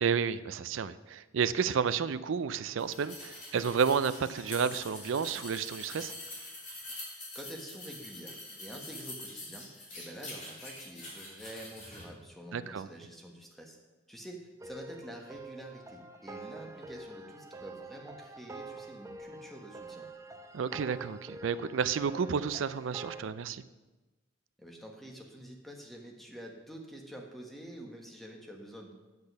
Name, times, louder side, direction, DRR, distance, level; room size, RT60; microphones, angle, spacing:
voice 1, 0.0-6.1 12.5-12.9 20.5-23.6, right 6 dB, 75° right, 15 dB, 0.4 m, -31 dB
sound 1, 2.8-12.0, left 1 dB, 40° left, 3.2 m, -45 dB
voice 2, 7.3-9.7 9.9-13.8 14.1-20.1 24.6-28.9, right 1 dB, ahead, 0 dB, 1.3 m, -47 dB
sound 2, 14.6-23.2, right 2 dB, 15° right, 0.6 m, -47 dB
8.7 x 8.2 x 5.4 m, 1.2 s
head